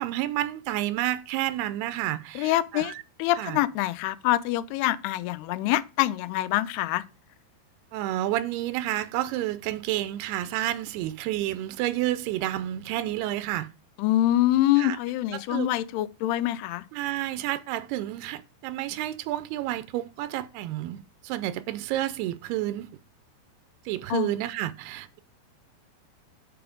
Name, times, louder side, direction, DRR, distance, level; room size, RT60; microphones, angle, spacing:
voice 1, 0.0-3.0 3.4-3.6 7.9-13.7 14.8-15.0 15.3-15.7 16.9-22.9 23.9-25.2, right 14 dB, 85° right, 2.5 m, -30 dB
voice 2, 2.4-2.9 3.2-7.0 14.0-16.8 24.1-24.4, left 15 dB, 85° left, 2.6 m, -25 dB
6.9 x 5.0 x 5.0 m
omnidirectional pair, 4.5 m